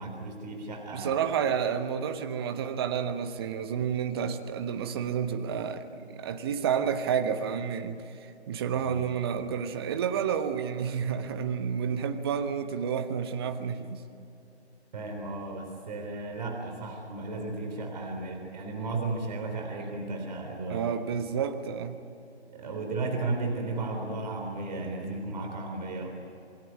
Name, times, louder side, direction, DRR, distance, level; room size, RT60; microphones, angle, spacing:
voice 1, 0.0-1.1 8.7-9.0 14.9-20.9 22.5-26.2, right 3 dB, 40° right, 2 dB, 3.7 m, -34 dB
voice 2, 0.9-14.0 20.7-22.0, right 7 dB, 20° right, 8 dB, 1.2 m, -30 dB
27.5 x 21.0 x 9.5 m, 2.6 s
figure-of-eight pair, 145°, 33 cm